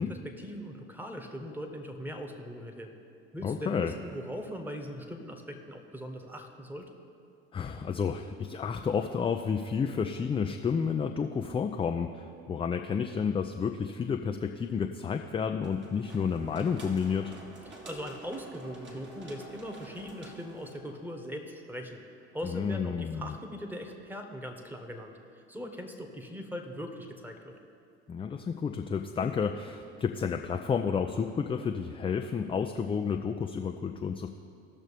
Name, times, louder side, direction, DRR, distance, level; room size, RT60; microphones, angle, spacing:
voice 1, 0.0-2.9 3.3-6.9 17.8-22.0 22.3-27.5, equal, 5° right, 4 dB, 1.4 m, -40 dB
voice 2, 3.4-3.9 7.5-17.3 22.4-23.3 28.1-34.3, left 6 dB, 15° left, 4 dB, 0.4 m, -31 dB
sound 1, 15.6-21.1, right 1 dB, 35° right, 1.8 m, -48 dB
17.5 x 6.4 x 3.4 m, 2.6 s
hypercardioid pair, 65°, 32 cm